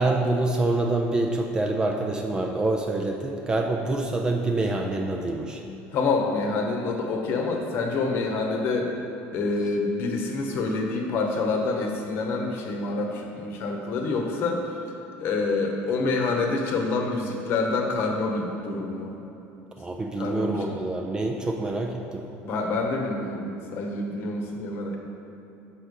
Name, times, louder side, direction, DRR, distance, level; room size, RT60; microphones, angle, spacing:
voice 1, 0.0-5.6 19.8-22.3, right 2 dB, 15° right, 2 dB, 0.4 m, -26 dB
voice 2, 5.9-8.9 9.3-14.6 15.2-19.2 20.2-20.8 22.4-25.0, left 3 dB, 45° left, 2 dB, 1.0 m, -27 dB
5.8 x 5.1 x 6.4 m, 2.9 s
cardioid pair, 160°, 5 cm